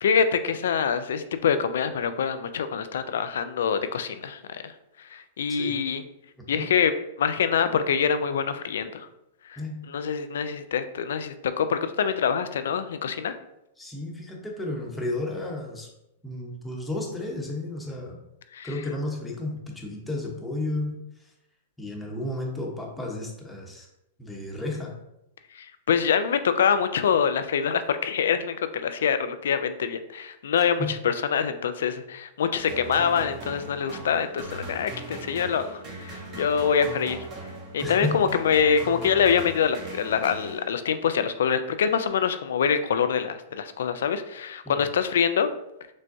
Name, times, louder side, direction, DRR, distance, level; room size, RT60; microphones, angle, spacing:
voice 1, 0.0-4.6 5.0-6.0 6.5-6.9 7.2-9.1 9.5-9.6 9.9-13.3 18.5-18.7 25.6-37.2 37.7-45.5, left 7 dB, 80° left, 10 dB, 0.4 m, -25 dB
voice 2, 13.8-15.9 16.2-18.2 18.6-21.0 21.8-23.9 24.2-24.9 30.6-30.9 37.8-38.1 44.6-44.9, left 2 dB, 5° left, -2 dB, 0.9 m, -32 dB
sound 1, 32.7-41.0, right 2 dB, 40° right, 1.3 m, -39 dB
6.1 x 2.2 x 2.6 m, 0.85 s
hypercardioid pair, 125°, 0 cm